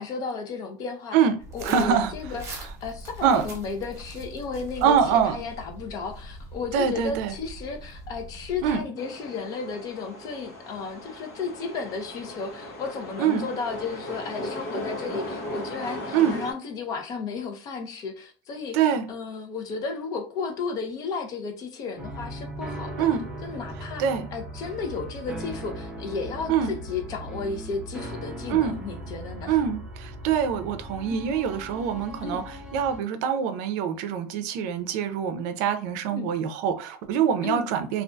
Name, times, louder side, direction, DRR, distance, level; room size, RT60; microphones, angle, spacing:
voice 1, 0.0-1.2 1.5-18.8 19.1-23.1 23.4-24.0 24.3-29.6 31.1-31.3 32.2-32.4 36.2-36.3 37.4-37.7, left 5 dB, 45° left, 0.6 m, -34 dB
sound 1, 1.4-8.8, right 1 dB, 30° right, 0.9 m, -42 dB
voice 2, 1.6-2.1 3.2-3.4 4.8-5.4 6.7-7.3 8.6-8.8 13.2-13.5 16.1-16.4 18.7-19.1 23.0-23.2 24.0-24.3 26.5-26.7 28.5-28.8 29.5-38.0, right 8 dB, 70° right, 0.5 m, -24 dB
sound 2, 9.0-16.5, left 1 dB, 70° left, 0.9 m, -37 dB
sound 3, 22.0-33.0, right 1 dB, 10° right, 0.6 m, -38 dB
2.6 x 2.4 x 2.2 m
supercardioid pair, 130°, 9 cm